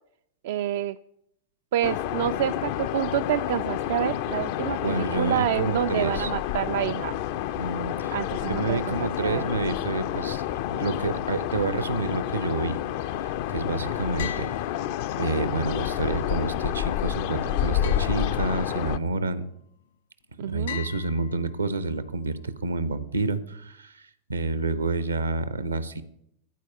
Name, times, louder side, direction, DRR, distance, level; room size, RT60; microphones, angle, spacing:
voice 1, 0.4-1.0 1.7-7.2 8.1-9.4 20.4-20.8, right 11 dB, 55° right, 11 dB, 0.3 m, -28 dB
sound 1, 1.8-19.0, left 11 dB, 50° left, 0.5 m, -29 dB
voice 2, 4.7-6.3 7.6-8.2 8.4-12.8 13.2-14.5 15.2-19.5 20.4-26.0, right 3 dB, 75° right, 14 dB, 0.8 m, -29 dB
sound 2, 14.2-15.4 17.8-18.9 20.7-21.9, left 9 dB, 65° left, 1.3 m, -40 dB
14.0 x 4.7 x 8.5 m, 0.75 s
figure-of-eight pair, 90°, 0 cm